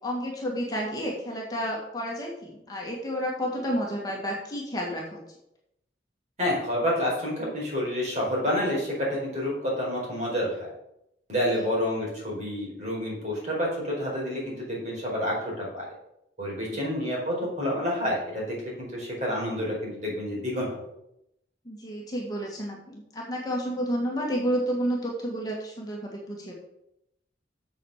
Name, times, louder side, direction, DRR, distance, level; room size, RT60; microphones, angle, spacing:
voice 1, 0.0-5.2 11.5-11.6 16.7-16.9 21.7-26.5, equal, 20° left, -2 dB, 2.0 m, -31 dB
voice 2, 6.4-10.5 11.3-15.8 16.4-20.7, equal, 40° right, -4 dB, 4.6 m, -29 dB
7.7 x 7.3 x 6.6 m, 0.81 s
head